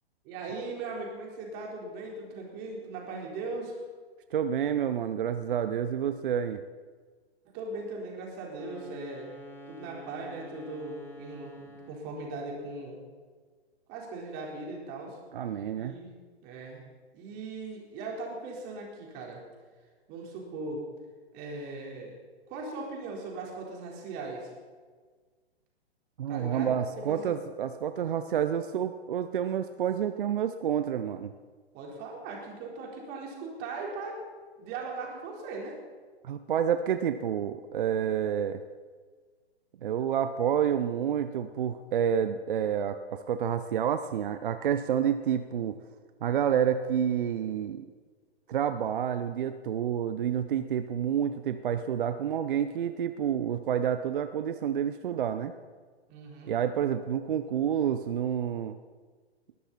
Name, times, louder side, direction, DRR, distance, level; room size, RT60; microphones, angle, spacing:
voice 1, 0.2-3.8 7.4-9.3 9.7-13.0 13.9-15.2 15.7-16.1 16.4-16.8 17.1-19.4 20.1-20.8 21.3-22.2 22.5-24.5 26.3-27.4 31.7-34.2 34.6-35.8 56.1-56.5, right 3 dB, 30° right, -1 dB, 4.2 m, -39 dB
voice 2, 4.3-6.6 15.3-16.0 26.2-31.3 36.2-38.6 39.8-45.8 46.2-47.8 48.5-55.5 56.5-58.8, right 9 dB, 50° right, 11 dB, 0.8 m, -29 dB
sound 1, 8.5-12.1, right 1 dB, 5° left, 3.1 m, -48 dB
21.0 x 13.0 x 4.3 m, 1.5 s
figure-of-eight pair, 120°, 33 cm